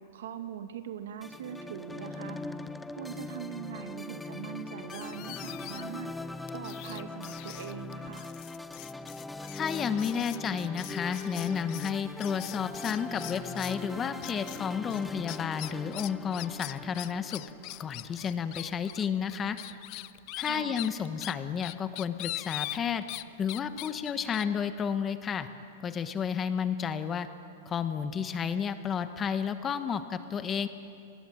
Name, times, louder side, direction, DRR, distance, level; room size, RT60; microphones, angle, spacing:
voice 1, 0.1-2.4 3.0-8.3 20.4-20.9, right 8 dB, 80° right, 7 dB, 2.2 m, -42 dB
sound 1, 1.2-18.6, left 2 dB, 5° left, 0.7 m, -41 dB
sound 2, 4.9-6.0 6.5-13.8 14.2-14.6 14.9-23.2 23.5-24.4, left 21 dB, 45° left, 0.6 m, -42 dB
voice 2, 9.6-17.4 17.8-19.6 20.4-23.0 23.4-25.5 25.8-27.3 27.6-30.7, left 7 dB, 20° left, 10 dB, 1.2 m, -31 dB
25.0 x 19.5 x 8.8 m, 2.5 s
supercardioid pair, 145°, 0 cm